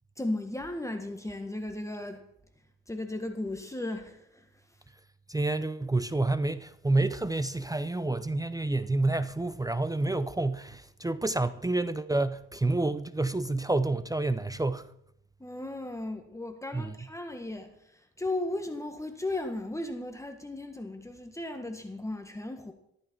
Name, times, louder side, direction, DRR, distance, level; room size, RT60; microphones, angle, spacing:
voice 1, 0.2-2.3 2.9-4.5 15.4-22.7, left 2 dB, 10° left, 1.6 m, -36 dB
voice 2, 5.3-14.9 16.7-16.9, right 2 dB, 10° right, 0.7 m, -29 dB
14.0 x 13.5 x 4.5 m
cardioid pair, 90°, 30 cm